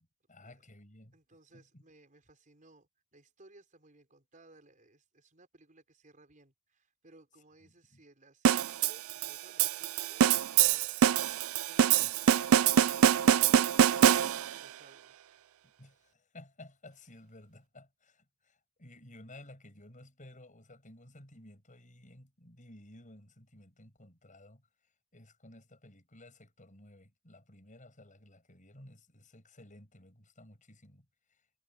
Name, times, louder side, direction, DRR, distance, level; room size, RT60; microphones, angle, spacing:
voice 1, 0.3-1.1 1.5-1.8 7.7-8.0 12.0-12.1 15.6-24.7 25.1-31.4, left 1 dB, 40° left, 6.9 m, -55 dB
voice 2, 1.1-11.2 11.6-15.4, right 2 dB, 40° right, 5.4 m, -61 dB
sound 1, 8.4-14.7, right 9 dB, 85° right, 0.4 m, -25 dB
head